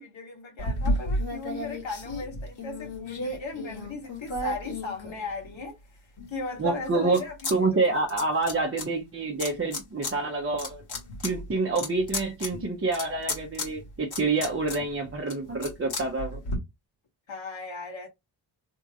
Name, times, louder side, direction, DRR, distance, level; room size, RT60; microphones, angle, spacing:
voice 1, 0.0-5.8 6.3-7.8 17.3-18.1, left 4 dB, 70° left, 1.8 m, -37 dB
sound 1, 0.6-5.7 6.2-7.6 7.8-8.9 9.4-10.1 10.5-16.6, left 1 dB, 55° left, 2.0 m, -33 dB
voice 2, 6.6-7.2 7.5-10.8 11.2-16.4, right 3 dB, 30° right, 0.8 m, -27 dB
3.6 x 2.7 x 2.6 m
wide cardioid pair, 145°, 47 cm